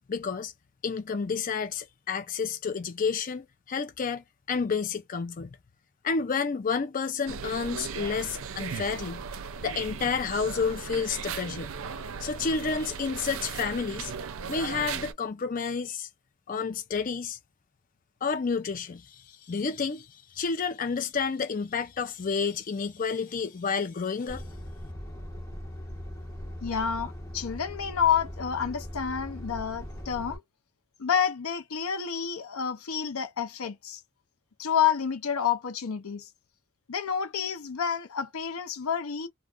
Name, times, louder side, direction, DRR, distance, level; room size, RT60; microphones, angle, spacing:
voice 1, 0.1-0.5 0.8-5.5 6.0-9.2 9.6-11.7 12.2-14.1 14.5-16.1 16.5-17.4 18.2-24.4, left 5 dB, 40° left, 0.4 m, -30 dB
sound 1, 7.3-15.1, right 6 dB, 70° right, 0.5 m, -37 dB
Truck, 24.3-30.4, equal, 15° left, 1.1 m, -40 dB
voice 2, 26.6-30.4 31.0-34.0 34.6-36.3 36.9-39.3, left 7 dB, 80° left, 0.6 m, -29 dB
2.4 x 2.3 x 3.5 m
head